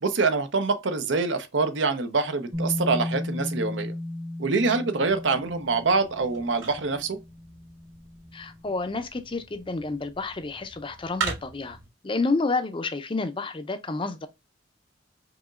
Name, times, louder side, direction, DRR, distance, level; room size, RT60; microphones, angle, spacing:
voice 1, 0.0-3.9 4.4-7.2, right 4 dB, 70° right, 0.7 m, -25 dB
Bass guitar, 2.5-8.6, left 1 dB, 35° right, 1.0 m, -35 dB
sound 1, 5.0-11.9, right 5 dB, 90° right, 2.6 m, -40 dB
voice 2, 8.3-11.8 12.0-14.3, left 3 dB, 25° left, 0.5 m, -29 dB
4.9 x 3.0 x 2.3 m
head